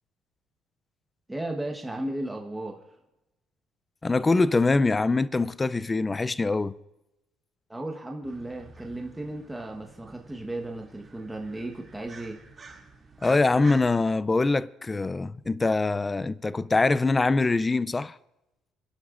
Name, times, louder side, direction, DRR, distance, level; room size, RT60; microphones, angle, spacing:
voice 1, 1.3-2.8 7.7-12.4, right 1 dB, 10° right, 1.2 m, -35 dB
voice 2, 4.0-6.7 13.2-18.2, left 3 dB, 20° left, 0.4 m, -23 dB
sound 1, 8.2-13.9, right 3 dB, 30° right, 2.5 m, -49 dB
28.0 x 11.5 x 2.5 m
cardioid pair, 120°, 0 cm